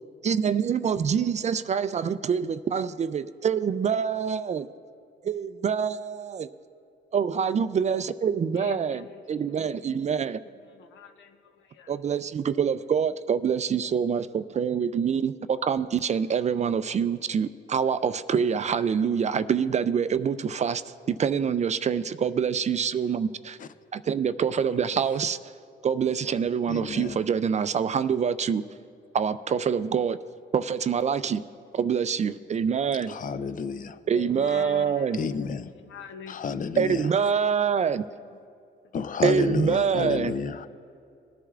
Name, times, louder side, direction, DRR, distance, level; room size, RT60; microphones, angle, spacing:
voice 1, 0.2-4.7 5.2-6.5 7.1-10.4 11.9-20.8 21.1-23.6 23.9-25.4 25.8-28.6 29.1-30.2 30.5-31.4 31.7-33.2 34.1-35.2 36.8-38.0 39.2-40.3, right 7 dB, 35° right, 0.4 m, -25 dB
voice 2, 8.5-9.2 9.6-10.1 10.6-11.9 34.1-38.4 39.1-39.2, left 6 dB, 70° left, 0.9 m, -45 dB
voice 3, 26.7-27.2 33.1-34.0 35.1-35.7 36.3-37.1 38.9-40.7, left 5 dB, 45° left, 0.5 m, -30 dB
19.5 x 9.9 x 2.4 m
cardioid pair, 90°, 20 cm